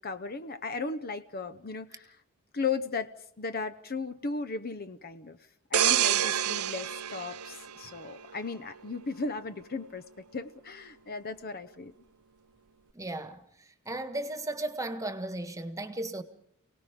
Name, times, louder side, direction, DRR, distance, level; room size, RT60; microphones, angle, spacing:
voice 1, 0.0-2.2 2.5-5.4 5.7-10.0 10.3-11.9, left 4 dB, 45° left, 0.8 m, -36 dB
sound 1, 5.7-8.4 8.9-9.1, right 11 dB, 80° right, 0.8 m, -28 dB
voice 2, 12.9-13.4 13.8-16.2, right 2 dB, 15° right, 1.5 m, -35 dB
29.0 x 18.5 x 5.2 m
head